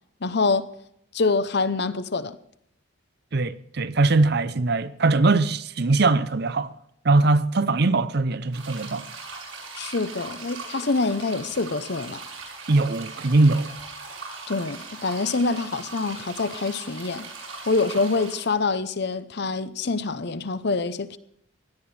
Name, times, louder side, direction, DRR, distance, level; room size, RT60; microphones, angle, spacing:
voice 1, 0.2-0.7 1.1-2.4 9.7-12.2 14.5-17.3 17.7-21.2, left 3 dB, 55° left, 0.7 m, -25 dB
voice 2, 3.3-6.7 7.0-9.1 12.7-13.7, right 3 dB, 50° right, 0.6 m, -21 dB
sound 1, 8.5-18.5, right 4 dB, 80° right, 6.3 m, -40 dB
17.0 x 11.5 x 4.3 m
head